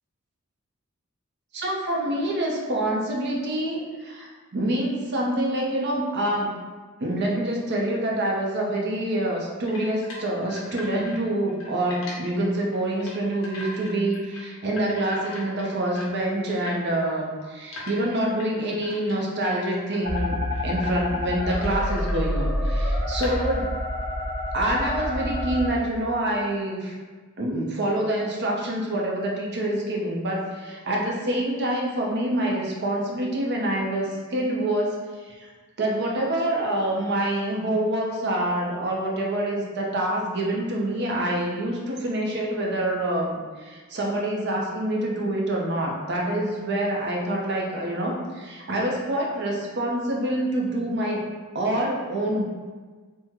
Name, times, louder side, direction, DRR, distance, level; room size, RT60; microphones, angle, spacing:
voice 1, 1.5-6.6 7.0-23.7 24.5-26.9 27.4-35.4 35.8-51.2 51.5-52.4, right 1 dB, 50° right, -2 dB, 0.6 m, -26 dB
sound 1, 9.7-11.2 11.5-12.1 12.7-13.2 13.4-14.4 14.7-16.2 16.6-16.8 17.4-20.3 20.5-21.0 21.3-22.3 22.7-22.8 23.2-23.6, left 2 dB, 75° left, 0.8 m, -40 dB
sound 2, 20.0-25.7, left 1 dB, 90° right, 1.2 m, -27 dB
3.6 x 2.1 x 2.9 m, 1.4 s
head